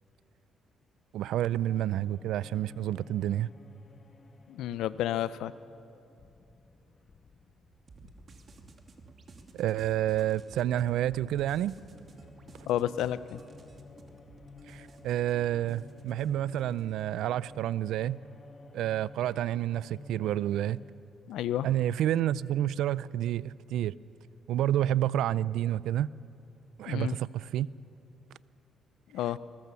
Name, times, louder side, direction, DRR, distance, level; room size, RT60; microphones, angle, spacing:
voice 1, 1.1-3.5 9.5-11.7 14.7-18.2 18.7-20.8 21.6-24.0 24.5-26.1 26.8-27.7, right 12 dB, 85° right, 0.4 m, -29 dB
sound 1, 1.6-9.8 10.1-21.0, left 2 dB, 40° left, 1.4 m, -53 dB
voice 2, 4.5-5.5 12.7-13.4 21.3-21.7 26.9-27.2 29.1-29.4, left 12 dB, 85° left, 0.6 m, -31 dB
sound 2, 7.7-18.0, right 3 dB, 45° right, 2.5 m, -54 dB
23.5 x 21.0 x 7.0 m
cardioid pair, 90°, 0 cm